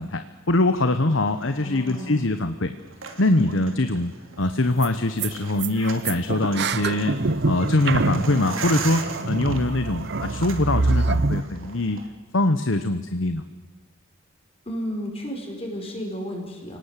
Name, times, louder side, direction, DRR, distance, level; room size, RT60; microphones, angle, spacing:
voice 1, 0.0-2.7 3.2-4.1 4.4-7.2 7.4-12.0 12.3-13.4, left 2 dB, 65° left, 9 dB, 1.1 m, -23 dB
sound 1, 1.2-12.1, right 4 dB, 75° right, 3.1 m, -39 dB
voice 2, 1.6-2.3 14.7-16.8, equal, 30° left, 1 dB, 5.1 m, -32 dB
sound 2, 4.4-4.5 4.8-4.9 5.2-5.3 5.6-11.4, right 3 dB, 55° right, 0.8 m, -25 dB
29.5 x 19.0 x 8.3 m, 1.4 s
head